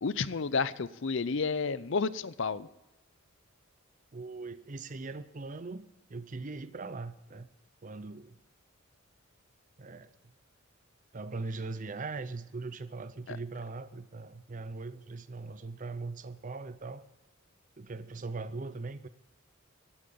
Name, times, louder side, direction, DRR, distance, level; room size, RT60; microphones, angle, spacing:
voice 1, 0.0-2.7 13.3-13.4, left 4 dB, 60° left, 17 dB, 0.6 m, -31 dB
voice 2, 4.1-5.8 6.1-7.5 7.8-8.4 9.8-10.1 11.1-17.0 17.8-19.1, right 3 dB, 35° right, 13 dB, 0.6 m, -40 dB
14.5 x 9.0 x 8.6 m, 1.0 s
head